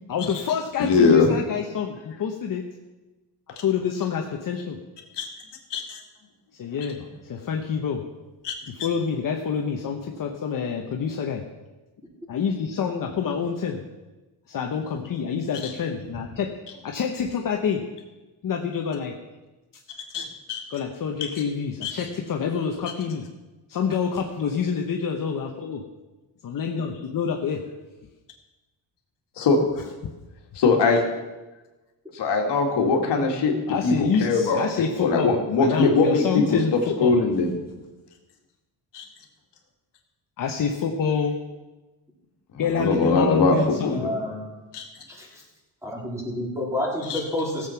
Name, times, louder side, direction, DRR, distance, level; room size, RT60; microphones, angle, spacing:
voice 1, 0.1-2.7 3.6-4.8 6.6-8.1 8.7-11.5 12.3-13.8 14.5-16.5 16.8-17.9 18.4-19.2 20.7-23.2 23.7-25.8 26.4-27.7 33.7-37.1 40.4-41.4 42.6-44.0, left 6 dB, 45° left, 2 dB, 1.1 m, -27 dB
voice 2, 0.8-1.3 5.2-5.3 5.7-6.0 8.4-8.5 20.1-20.6 21.8-21.9 29.4-29.6 30.5-31.0 32.1-33.5 33.8-34.6 35.0-37.5 38.9-39.0 42.5-44.1 44.7-44.8 47.1-47.2, left 4 dB, 65° left, 1 dB, 2.3 m, -21 dB
voice 3, 43.5-44.4 45.1-45.4 45.8-47.7, left 1 dB, 5° right, -3 dB, 3.7 m, -30 dB
16.0 x 7.9 x 5.8 m, 1.1 s
cardioid pair, 130°, 44 cm